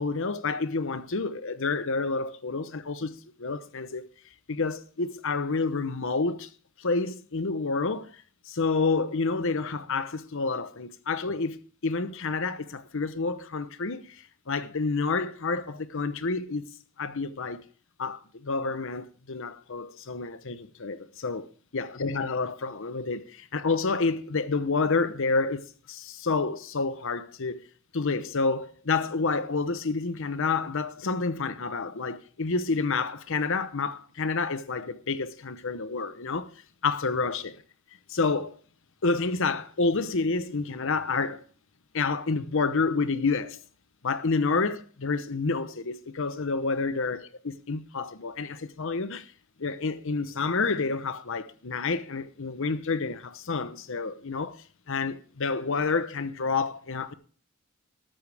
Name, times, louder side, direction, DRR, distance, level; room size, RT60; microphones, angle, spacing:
voice 1, 0.0-4.1 4.5-6.5 6.8-16.7 17.0-17.6 18.0-21.5 21.7-27.6 27.9-36.5 36.8-37.5 38.1-38.6 39.0-41.4 41.9-43.6 44.0-49.3 49.6-57.1, left 4 dB, 65° left, 0.9 m, -29 dB
13.5 x 13.0 x 3.4 m
head